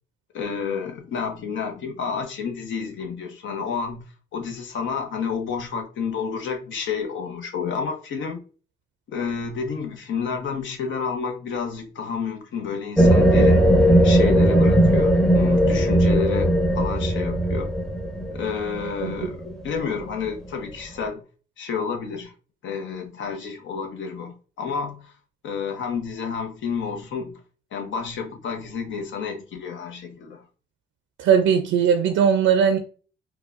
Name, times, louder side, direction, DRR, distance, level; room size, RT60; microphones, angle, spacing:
voice 1, 0.3-8.4 9.1-13.6 14.0-17.7 18.3-21.2 21.6-22.3 22.6-25.1 25.4-27.4 27.7-30.4, left 6 dB, 70° left, 0.8 m, -30 dB
sound 1, 13.0-20.2, right 1 dB, 5° left, 0.7 m, -18 dB
voice 2, 31.2-32.8, right 7 dB, 85° right, 0.5 m, -19 dB
4.7 x 2.2 x 2.4 m
cardioid pair, 90°, 20 cm